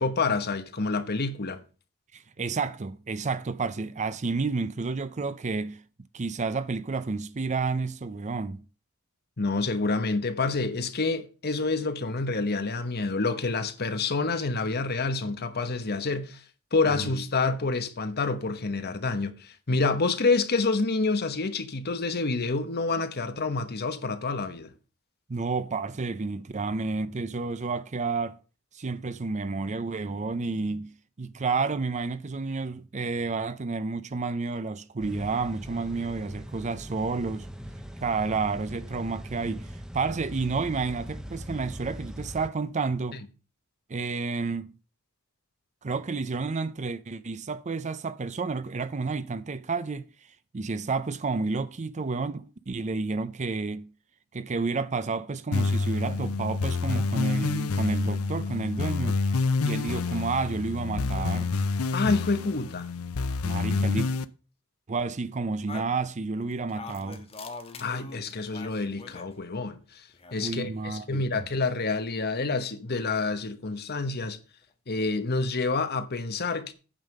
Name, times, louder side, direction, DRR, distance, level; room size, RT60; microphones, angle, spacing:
voice 1, 0.0-1.6 9.4-16.4 16.7-24.7 61.9-62.9 67.8-70.0 70.3-74.4 74.9-76.7, left 3 dB, 50° left, 1.1 m, -28 dB
voice 2, 2.1-5.8 6.1-8.6 17.0-17.1 25.3-28.4 28.7-30.9 31.2-37.5 38.0-43.2 43.9-44.7 45.8-50.1 50.5-53.9 54.3-59.4 59.6-61.5 63.4-64.1 64.9-67.2 70.4-71.4, right 4 dB, 35° right, 0.5 m, -30 dB
sound 1, 35.0-42.5, equal, 5° right, 0.7 m, -41 dB
sound 2, 55.5-64.2, left 4 dB, 90° left, 0.6 m, -28 dB
sound 3, 65.7-69.3 70.1-70.8, left 3 dB, 30° left, 1.3 m, -43 dB
9.0 x 5.5 x 6.5 m
head